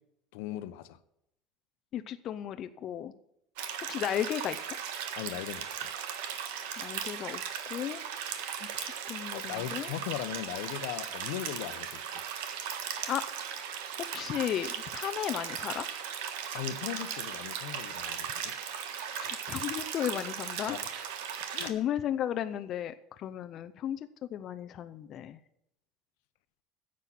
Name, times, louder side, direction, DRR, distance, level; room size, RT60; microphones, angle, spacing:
voice 1, 0.3-1.0 5.2-5.9 9.3-12.0 16.5-18.5 20.6-20.9 21.5-21.7, left 13 dB, 80° left, 12 dB, 0.9 m, -38 dB
voice 2, 1.9-3.1 3.9-4.6 6.8-7.4 7.7-8.0 8.6-9.9 13.1-13.2 14.0-15.9 19.1-20.8 21.6-25.4, left 10 dB, 35° left, 9 dB, 0.6 m, -34 dB
sound 1, 3.6-21.7, right 8 dB, 85° right, 1.6 m, -37 dB
10.0 x 7.6 x 9.3 m, 0.80 s
cardioid pair, 160°, 0 cm